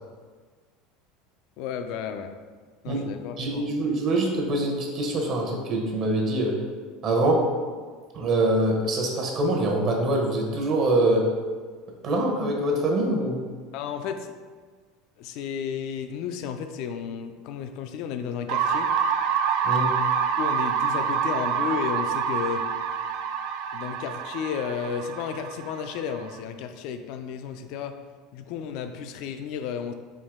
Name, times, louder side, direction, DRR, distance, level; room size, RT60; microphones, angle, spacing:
voice 1, 1.6-2.3 2.8-3.7 13.7-14.3 15.2-18.9 20.4-22.6 23.7-28.0 28.3-29.9, left 7 dB, 60° left, 8 dB, 0.4 m, -33 dB
voice 2, 3.4-6.6 7.0-7.5 8.1-11.3 12.0-13.4 19.6-20.0, right 1 dB, 45° right, 1 dB, 0.9 m, -24 dB
sound 1, 18.5-26.4, right 7 dB, 65° right, 0.3 m, -27 dB
4.5 x 2.8 x 3.6 m, 1.5 s
supercardioid pair, 125°, 0 cm